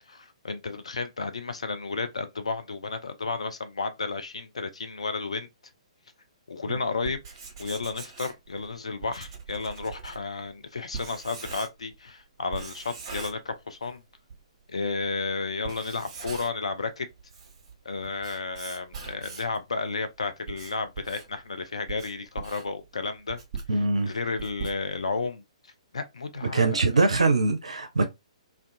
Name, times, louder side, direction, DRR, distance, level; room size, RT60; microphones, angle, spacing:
voice 1, 0.0-5.5 6.5-7.2 7.6-14.0 14.7-17.1 17.8-23.4 23.7-25.4 25.9-27.0, left 4 dB, 65° left, 0.4 m, -32 dB
Writing, 7.0-12.0 12.5-14.0 14.3-14.4 15.0-15.1 15.5-16.7 17.1-19.6 20.2-25.2, right 5 dB, 35° right, 0.9 m, -41 dB
voice 2, 23.7-24.1 26.5-28.1, right 3 dB, 70° right, 0.5 m, -22 dB
2.4 x 2.3 x 2.5 m
figure-of-eight pair, 125°, 3 cm